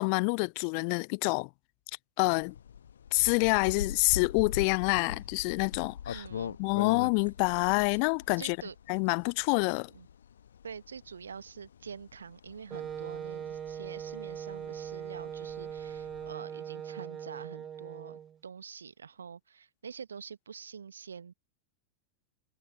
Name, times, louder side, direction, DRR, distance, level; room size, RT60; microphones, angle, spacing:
voice 1, 0.0-1.5 2.2-2.5 3.1-6.2 6.6-8.6 8.9-9.9, left 40 dB or more, 45° left, 0.3 m, -27 dB
sound 1, 2.2-16.3, left 8 dB, 65° left, 1.1 m, -42 dB
voice 2, 6.1-6.6 8.4-8.7 9.9-10.1 10.6-21.3, right 6 dB, 70° right, 1.0 m, -46 dB
Wind instrument woodwind instrument, 12.7-18.4, right 9 dB, 25° right, 0.6 m, -40 dB
figure-of-eight pair, 90°, 0 cm